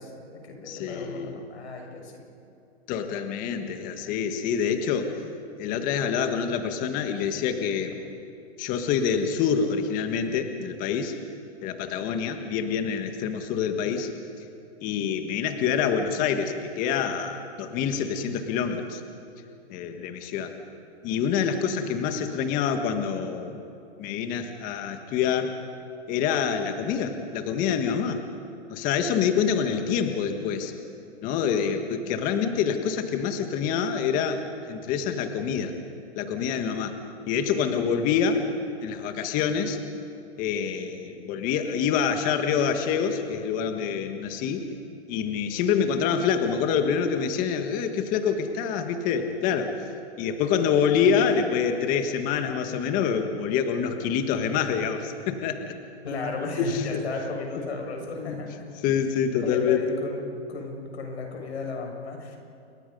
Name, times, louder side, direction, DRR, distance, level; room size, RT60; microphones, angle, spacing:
voice 1, 0.0-2.2 56.0-58.6 59.4-60.2 60.5-62.4, left 3 dB, 80° left, 2 dB, 6.9 m, -34 dB
voice 2, 0.7-1.4 2.9-5.2 5.6-8.0 8.6-11.2 11.6-14.1 14.8-19.0 19.7-20.5 21.0-23.6 24.0-25.5 26.1-28.2 28.7-30.7 31.2-35.7 36.1-37.0 37.3-38.5 38.8-39.8 40.4-44.6 45.1-49.9 50.2-55.7 56.6-57.0 58.1-58.4 58.8-59.8, left 7 dB, 25° left, 7 dB, 1.6 m, -26 dB
29.0 x 23.0 x 5.4 m, 2.8 s
hypercardioid pair, 150°, 33 cm